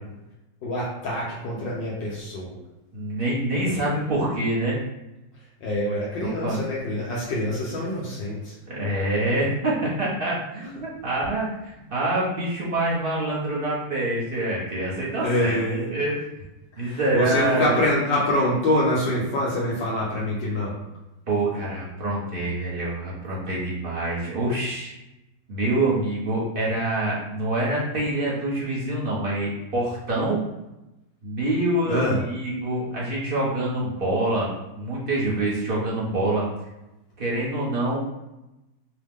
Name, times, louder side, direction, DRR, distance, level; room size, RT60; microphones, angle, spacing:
voice 1, 0.6-2.6 5.6-8.5 15.2-15.9 16.7-20.8 31.9-32.2, left 1 dB, 70° left, -5 dB, 1.3 m, -25 dB
voice 2, 2.9-4.8 6.4-6.6 8.7-16.2 16.8-17.8 21.3-24.9 25.5-30.4 31.2-36.5 37.2-38.0, right 1 dB, 50° right, -6 dB, 0.6 m, -26 dB
5.1 x 2.1 x 3.6 m, 0.96 s
omnidirectional pair, 2.3 m